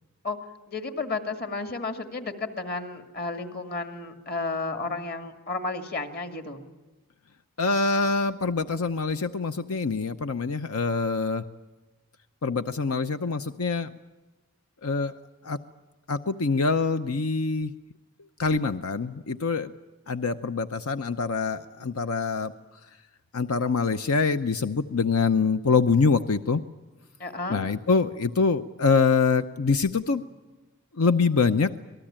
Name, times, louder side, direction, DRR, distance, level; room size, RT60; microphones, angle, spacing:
voice 1, 0.7-6.6 27.2-27.7, left 3 dB, 45° left, 7 dB, 2.2 m, -32 dB
voice 2, 7.6-11.4 12.4-13.9 14.8-15.1 15.4-15.6 16.1-17.7 18.4-19.7 20.1-22.5 23.3-26.6 27.5-30.2 30.9-31.7, left 4 dB, 85° left, 11 dB, 0.8 m, -25 dB
27.0 x 19.5 x 8.8 m, 1.1 s
head